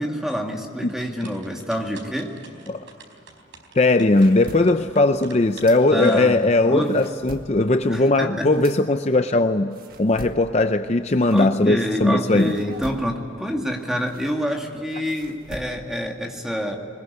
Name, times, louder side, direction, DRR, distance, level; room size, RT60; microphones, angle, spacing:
voice 1, 0.0-2.3 5.9-6.4 6.7-6.9 7.9-8.5 11.3-16.8, equal, 5° right, 1 dB, 2.2 m, -27 dB
sound 1, 0.9-6.7, right 4 dB, 90° right, 4.4 m, -46 dB
voice 2, 3.8-12.6, left 2 dB, 35° left, 9 dB, 0.6 m, -19 dB
sound 2, 3.8-6.3 6.7-12.0 12.4-16.1, right 1 dB, 50° right, 1.7 m, -43 dB
22.0 x 21.0 x 9.7 m, 2.7 s
head